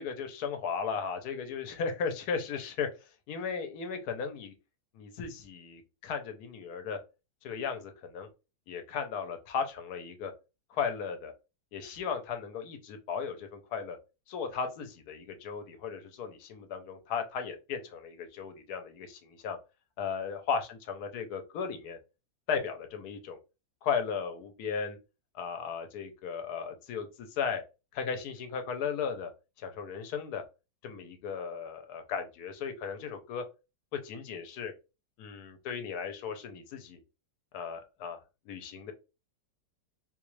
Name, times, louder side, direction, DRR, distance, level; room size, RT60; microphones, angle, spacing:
voice 1, 0.0-2.9 3.3-4.5 4.9-7.0 7.4-8.3 8.7-10.3 10.7-11.3 11.7-14.0 14.3-19.6 20.0-22.0 22.5-23.4 23.8-25.0 25.3-27.6 27.9-29.3 29.6-30.4 30.8-33.4 33.9-34.7 35.2-37.0 37.5-38.2 38.5-38.9, left 6 dB, 65° left, 6 dB, 1.1 m, -36 dB
3.9 x 2.3 x 3.1 m, 0.28 s
omnidirectional pair, 2.0 m